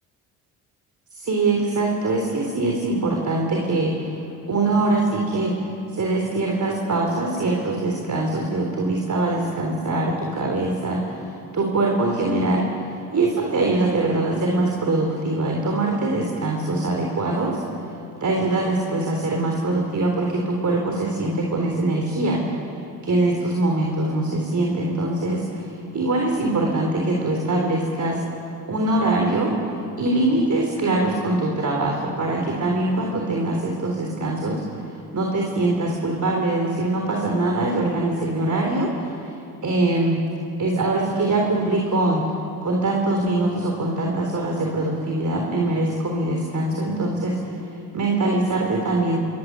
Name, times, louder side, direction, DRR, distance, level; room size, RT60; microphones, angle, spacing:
voice 1, 1.1-4.2 4.5-5.6 5.9-12.6 13.1-17.6 18.2-22.5 23.0-28.2 28.7-29.5 30.0-39.2 39.6-40.2 40.6-42.2 42.6-47.5 47.9-49.2, right 2 dB, 40° right, 0 dB, 3.8 m, -23 dB
25.5 x 14.0 x 9.7 m, 2.9 s
hypercardioid pair, 55°, 44 cm